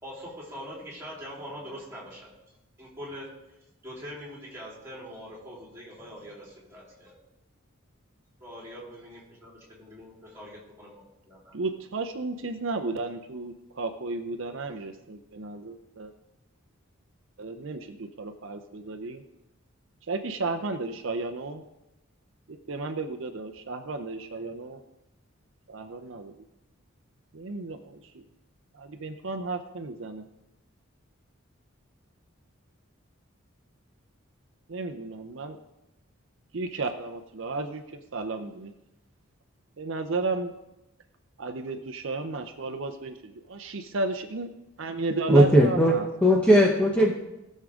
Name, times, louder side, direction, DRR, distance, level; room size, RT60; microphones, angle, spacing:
voice 1, 0.0-2.3 2.8-3.3 3.8-7.1 8.4-11.5, equal, 15° right, -5 dB, 3.6 m, -43 dB
voice 2, 11.5-16.1 17.4-19.2 20.1-21.6 22.5-24.8 25.7-26.3 27.3-28.2 28.7-30.2 34.7-35.6 36.5-37.8 38.1-38.7 39.8-40.5 41.4-44.5 44.8-46.1, right 3 dB, 65° right, 6 dB, 0.7 m, -33 dB
voice 3, 45.3-45.9 46.2-47.1, equal, 5° left, -2 dB, 0.9 m, -18 dB
18.5 x 6.5 x 3.7 m, 0.94 s
head